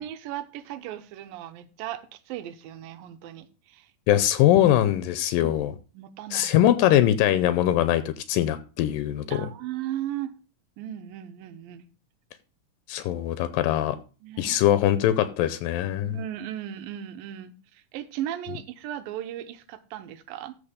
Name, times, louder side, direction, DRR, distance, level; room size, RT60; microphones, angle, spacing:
voice 1, 0.0-3.9 5.4-5.6 5.9-6.5 9.3-10.3 10.8-11.9 12.9-13.1 14.2-14.6 16.0-20.6, right 11 dB, 90° right, 12 dB, 2.5 m, -36 dB
voice 2, 4.1-5.7 6.3-9.4 12.9-14.0 14.4-16.2, left 12 dB, 85° left, 13 dB, 2.3 m, -22 dB
14.0 x 4.8 x 5.1 m, 0.34 s
omnidirectional pair, 4.1 m